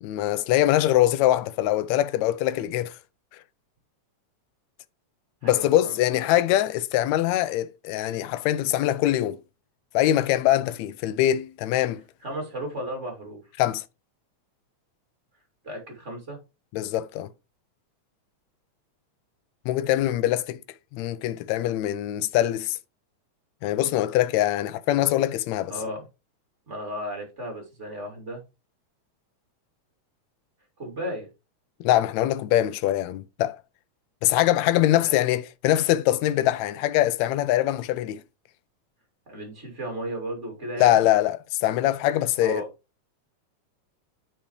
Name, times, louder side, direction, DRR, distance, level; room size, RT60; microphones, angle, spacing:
voice 1, 0.0-3.0 5.4-9.4 9.9-12.0 13.6-13.8 16.7-17.3 19.7-20.6 20.9-22.8 23.6-25.7 31.8-33.6 34.2-38.2 40.8-42.6, left 13 dB, 80° left, 1.8 m, -23 dB
voice 2, 5.4-5.9 12.2-13.4 15.6-16.4 25.7-26.0 26.7-28.4 30.8-31.3 35.0-35.1 39.3-41.1 42.4-42.7, equal, 25° right, 2.6 m, -34 dB
9.0 x 5.5 x 3.2 m
omnidirectional pair, 3.3 m